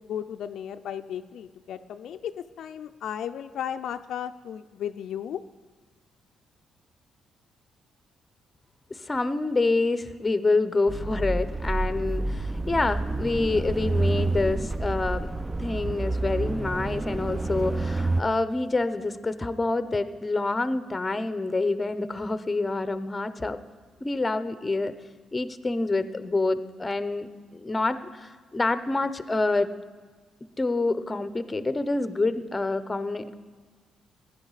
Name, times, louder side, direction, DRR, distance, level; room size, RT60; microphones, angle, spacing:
voice 1, 0.0-5.4, left 9 dB, 70° left, 9 dB, 0.4 m, -35 dB
voice 2, 8.9-15.3 15.6-23.6 24.0-24.9 25.3-29.7 30.6-33.3, left 3 dB, 20° left, 12 dB, 0.7 m, -27 dB
sound 1, 10.9-18.2, right 2 dB, 20° right, 0.4 m, -28 dB
16.0 x 10.5 x 4.0 m, 1.5 s
cardioid pair, 90°, 0 cm